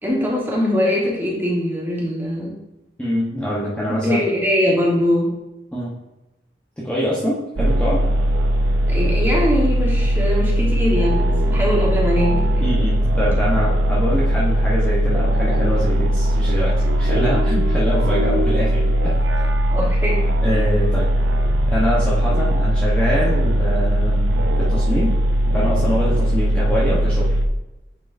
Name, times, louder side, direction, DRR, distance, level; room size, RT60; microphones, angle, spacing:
voice 1, 0.0-2.6 3.9-5.3 8.9-12.7 19.7-20.2, left 1 dB, 10° right, -4 dB, 1.4 m, -21 dB
voice 2, 3.0-4.2 5.7-6.0 6.8-8.0 12.6-19.1 20.4-21.1 21.7-24.3 24.6-25.2 25.5-27.3, equal, 5° left, -8 dB, 1.0 m, -24 dB
sound 1, 7.6-27.5, equal, 80° right, 0.6 m, -19 dB
9.2 x 4.6 x 2.6 m, 0.97 s
head